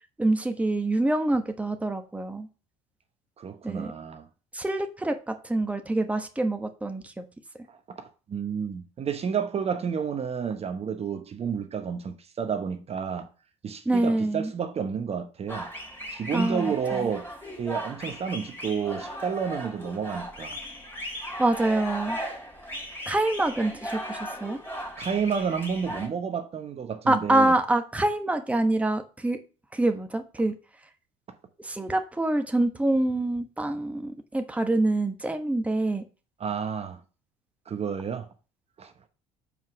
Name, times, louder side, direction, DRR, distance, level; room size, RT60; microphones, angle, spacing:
voice 1, 0.2-2.5 3.6-3.9 4.5-7.2 13.9-14.5 16.3-17.1 21.4-22.2 23.1-24.6 27.1-29.4 29.7-30.5 31.6-36.0, right 2 dB, 10° right, 1.1 m, -26 dB
voice 2, 3.4-4.3 7.7-13.3 13.6-15.7 16.1-17.3 17.6-20.6 25.0-27.6 36.4-37.0 37.7-38.3 38.8-39.1, right 6 dB, 35° right, 1.0 m, -30 dB
sound 1, 15.5-26.1, equal, 15° left, 2.8 m, -37 dB
5.5 x 4.8 x 5.9 m
hypercardioid pair, 75°, 17 cm